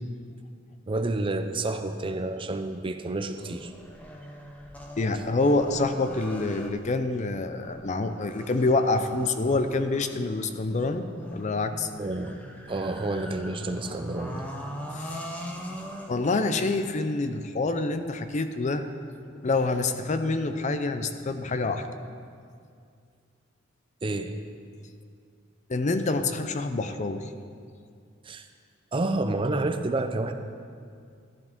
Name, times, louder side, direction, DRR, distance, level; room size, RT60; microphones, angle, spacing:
voice 1, 0.9-3.7 12.0-12.4 12.7-14.5 24.0-24.3 28.3-28.4 28.9-30.3, right 2 dB, 25° right, 8 dB, 0.5 m, -29 dB
sound 1, 3.4-17.0, equal, 5° left, 0.7 m, -42 dB
voice 2, 5.0-11.9 15.0-15.2 16.1-18.9 19.3-21.9 25.7-27.3, left 3 dB, 35° left, 9 dB, 0.5 m, -27 dB
13.0 x 10.5 x 3.6 m, 2.2 s
head